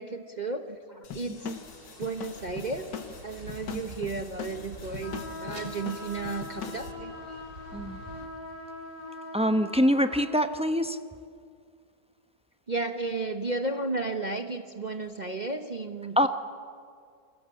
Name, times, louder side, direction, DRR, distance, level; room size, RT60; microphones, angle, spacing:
voice 1, 0.0-1.5 2.0-2.9 3.2-7.1 12.7-16.3, right 3 dB, 30° right, 5 dB, 1.0 m, -33 dB
sound 1, 1.0-6.9, left 7 dB, 85° left, 2.1 m, -42 dB
sound 2, 1.4-8.3, right 2 dB, 60° right, 3.5 m, -47 dB
sound 3, 5.0-10.4, left 2 dB, 45° left, 3.1 m, -42 dB
voice 2, 9.3-11.0 16.2-16.3, equal, 5° right, 8 dB, 0.5 m, -24 dB
29.0 x 23.0 x 7.7 m, 2.2 s
omnidirectional pair, 1.8 m